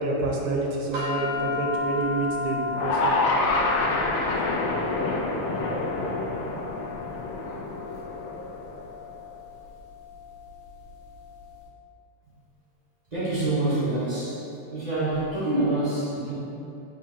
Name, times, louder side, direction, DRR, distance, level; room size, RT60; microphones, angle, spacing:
voice 1, 0.0-3.1, right 3 dB, 90° right, -1 dB, 1.5 m, -28 dB
sound 1, 0.9-11.4, left 5 dB, 70° right, 1.8 m, -34 dB
sound 2, 2.7-9.0, left 2 dB, 80° left, 1.5 m, -27 dB
voice 2, 13.1-14.4 14.7-16.3, right 2 dB, 25° right, -13 dB, 1.3 m, -26 dB
5.2 x 3.7 x 2.8 m, 3.0 s
omnidirectional pair, 2.3 m